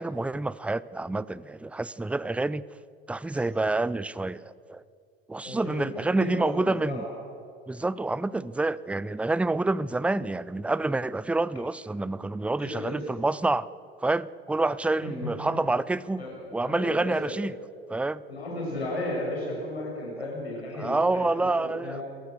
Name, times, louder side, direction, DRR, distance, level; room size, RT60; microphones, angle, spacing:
voice 1, 0.0-2.6 3.1-4.8 5.3-7.0 7.7-13.7 14.0-16.2 16.5-17.6 17.9-18.2 20.7-22.0, right 2 dB, 5° right, 20 dB, 0.4 m, -28 dB
voice 2, 5.4-7.1 12.6-13.1 15.0-15.5 16.2-17.4 18.3-22.0, left 1 dB, 90° left, -3 dB, 6.8 m, -34 dB
28.0 x 15.0 x 6.5 m, 2.4 s
figure-of-eight pair, 65°, 31 cm